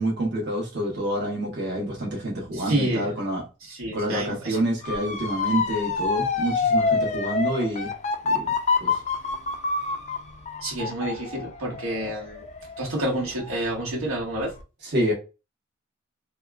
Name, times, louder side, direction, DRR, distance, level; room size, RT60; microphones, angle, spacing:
voice 1, 0.0-3.4 3.9-7.9 8.3-8.5 8.8-9.0 14.8-15.1, right 1 dB, 55° right, 1.0 m, -27 dB
voice 2, 2.5-3.1 3.7-4.6 10.6-12.4 12.8-14.5, right 1 dB, 85° right, 1.2 m, -28 dB
Motor vehicle (road) / Siren, 4.8-13.7 14.2-14.6, left 4 dB, 35° left, 0.4 m, -27 dB
2.8 x 2.3 x 2.2 m
head